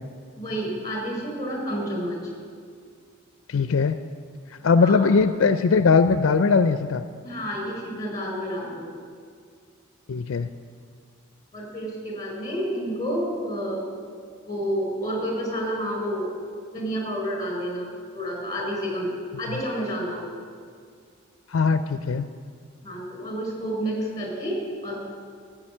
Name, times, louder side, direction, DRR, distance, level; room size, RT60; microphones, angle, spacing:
voice 1, 0.4-2.3 4.8-5.1 7.2-8.9 11.5-13.8 14.4-16.3 16.7-17.9 18.1-19.1 19.4-20.3 22.8-25.0, equal, 20° left, 0 dB, 4.3 m, -29 dB
voice 2, 3.5-4.0 4.6-7.0 10.1-10.5 21.5-22.3, left 4 dB, 70° left, 10 dB, 0.4 m, -20 dB
13.5 x 7.8 x 8.7 m, 2.1 s
head